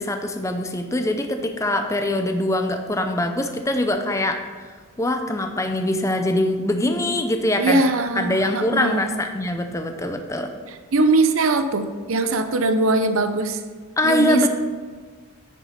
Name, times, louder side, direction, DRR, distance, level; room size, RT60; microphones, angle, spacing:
voice 1, 0.0-4.4 5.0-7.8 8.2-10.5 14.0-14.5, left 1 dB, 15° left, 6 dB, 0.5 m, -23 dB
voice 2, 7.6-9.1 10.7-13.6 14.0-14.5, right 2 dB, 70° right, 9 dB, 0.7 m, -21 dB
9.9 x 6.4 x 4.2 m, 1.5 s
head